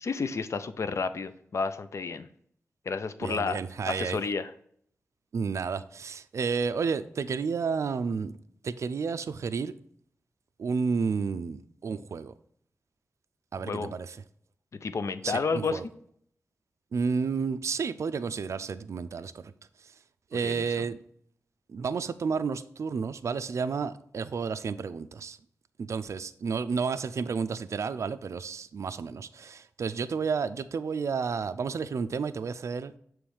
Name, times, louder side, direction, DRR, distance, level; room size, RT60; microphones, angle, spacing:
voice 1, 0.0-2.3 2.9-3.6 3.9-4.5 13.6-13.9 14.8-15.8 20.4-20.9, left 4 dB, 65° left, 11 dB, 0.5 m, -31 dB
voice 2, 3.2-4.2 5.3-8.4 8.6-9.7 10.6-12.3 13.5-14.2 15.2-15.8 16.9-19.5 20.3-21.0 21.7-25.4 25.8-32.9, right 5 dB, 65° right, 12 dB, 0.3 m, -31 dB
6.9 x 3.1 x 4.7 m, 0.65 s
wide cardioid pair, 70°, 5 cm